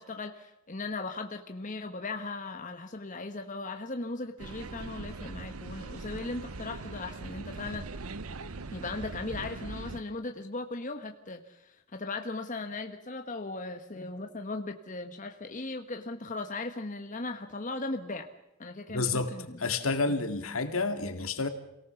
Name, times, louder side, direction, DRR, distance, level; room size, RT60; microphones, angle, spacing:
voice 1, 0.0-7.9 8.7-18.3 18.6-19.6 20.1-20.2, left 3 dB, 35° left, 5 dB, 1.2 m, -38 dB
sound 1, 4.4-10.0, right 3 dB, 85° right, 0.9 m, -41 dB
voice 2, 18.9-19.3 19.6-21.5, left 3 dB, 75° left, 8 dB, 2.2 m, -29 dB
28.0 x 17.5 x 7.0 m, 0.89 s
head